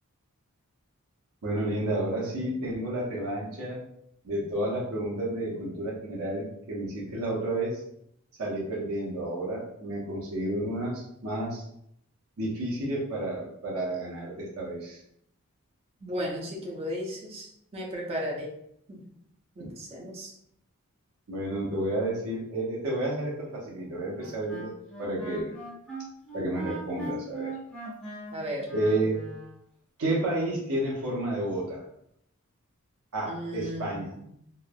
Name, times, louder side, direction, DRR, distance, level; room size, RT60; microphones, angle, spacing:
voice 1, 1.4-3.8 4.2-7.7 8.4-11.6 12.4-15.0 21.3-23.3 23.7-25.5 26.3-27.5 28.7-29.1 30.0-31.8 33.1-34.1, right 1 dB, 90° right, -4 dB, 0.7 m, -31 dB
voice 2, 16.0-18.5 18.9-19.0 19.6-20.3 28.3-28.7 33.3-34.2, equal, 30° right, -1 dB, 0.6 m, -35 dB
Wind instrument woodwind instrument, 24.2-29.5, right 2 dB, 5° left, 0.8 m, -40 dB
3.1 x 2.0 x 2.2 m, 0.73 s
head